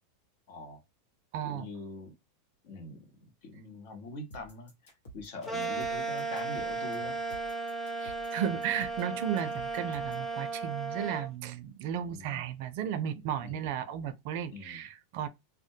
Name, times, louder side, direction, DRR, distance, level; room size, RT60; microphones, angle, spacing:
voice 1, 0.5-0.8 1.4-2.1 2.6-3.0 3.4-4.7 5.1-7.2 12.1-12.4 13.4-13.7 14.5-14.8, left 2 dB, 65° left, 0.9 m, -43 dB
voice 2, 1.3-1.7 8.0-15.3, right 9 dB, 60° right, 0.4 m, -34 dB
sound 1, 4.3-10.3, right 1 dB, 85° left, 1.0 m, -51 dB
sound 2, 5.5-11.3, right 4 dB, 15° left, 0.5 m, -35 dB
2.2 x 2.1 x 2.7 m
supercardioid pair, 135°, 0 cm